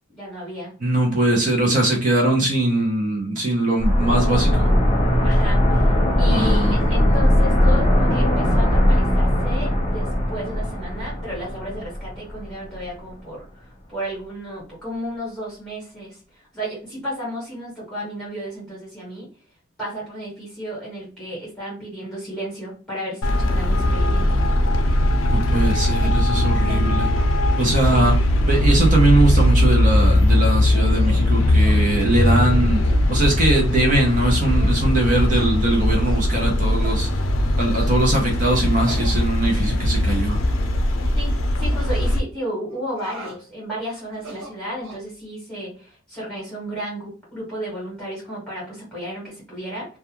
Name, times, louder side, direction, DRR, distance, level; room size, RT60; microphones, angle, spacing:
voice 1, 0.1-0.7 5.2-5.9 6.2-19.3 19.8-24.4 26.4-27.0 27.8-28.2 41.1-41.3 41.6-49.9, equal, 5° left, -7 dB, 1.3 m, -33 dB
voice 2, 0.8-4.7 6.3-6.8 25.3-27.1 27.6-28.2 28.5-32.8 33.1-37.1 37.6-40.4, right 1 dB, 40° right, 0 dB, 0.7 m, -21 dB
sound 1, 3.8-12.5 12.8-12.9, left 1 dB, 25° left, 0.8 m, -19 dB
Traffic noise roadway noise, 23.2-42.2, left 1 dB, 70° left, 0.4 m, -19 dB
sound 2, 26.0-26.2 26.7-26.8 27.1-27.4 27.8-28.2 28.5-28.6 29.1-29.6 30.3-30.6 31.0-31.3 31.6-31.8 32.2-32.4 33.0-33.2 33.7-33.8 34.4-34.5 35.3-35.5 36.0-36.3 36.8-37.0 37.8-38.0 38.8-39.8 40.1-40.2 40.8-41.1 41.7-41.9 42.7-43.4 44.1-45.1, equal, 70° right, 1.1 m, -41 dB
2.4 x 2.2 x 2.9 m, 0.37 s
head